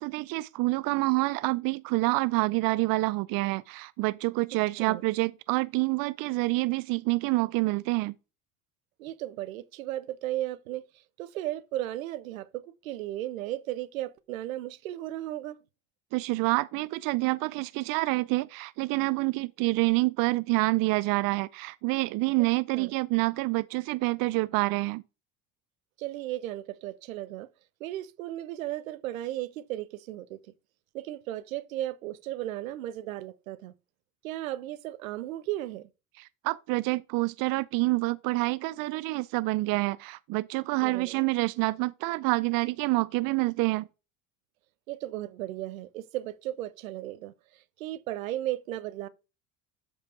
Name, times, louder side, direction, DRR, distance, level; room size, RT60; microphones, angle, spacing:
voice 1, 0.0-8.1 16.1-25.0 36.4-43.9, right 23 dB, 55° right, 0.5 m, -27 dB
voice 2, 9.0-15.6 22.7-23.0 26.0-27.5 27.8-30.5 30.9-33.7 34.2-35.9 40.8-41.3 44.9-49.1, right 14 dB, 85° right, 0.8 m, -35 dB
7.7 x 4.8 x 4.8 m
hypercardioid pair, 70°, 40 cm